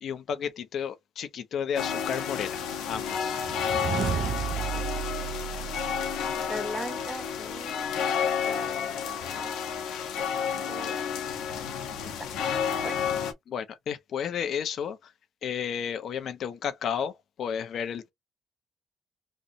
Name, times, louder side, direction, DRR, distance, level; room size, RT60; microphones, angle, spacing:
voice 1, 0.0-3.4 13.5-15.1 15.4-17.1 17.4-18.1, left 7 dB, 65° left, 0.8 m, -32 dB
sound 1, 1.8-13.3, left 7 dB, 90° left, 1.0 m, -31 dB
sound 2, 3.4-6.6, right 9 dB, 60° right, 0.3 m, -33 dB
voice 2, 6.5-8.0 8.4-9.5 10.7-10.9 12.0-12.3 12.8-13.0, equal, 5° right, 1.2 m, -39 dB
3.2 x 2.6 x 3.8 m
cardioid pair, 90°, 0 cm